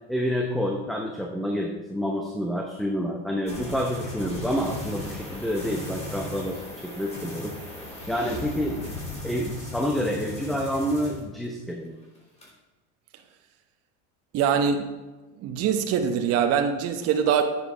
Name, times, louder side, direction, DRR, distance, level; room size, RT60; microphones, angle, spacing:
voice 1, 0.1-7.6 8.1-8.9 9.2-12.0, equal, ahead, 1 dB, 0.8 m, -28 dB
sound 1, 3.5-11.7 12.0-12.5, left 2 dB, 20° left, 3.7 m, -37 dB
voice 2, 14.3-14.9 15.4-17.4, right 7 dB, 45° right, 5 dB, 0.9 m, -23 dB
9.7 x 7.3 x 4.8 m, 1.2 s
supercardioid pair, 125°, 33 cm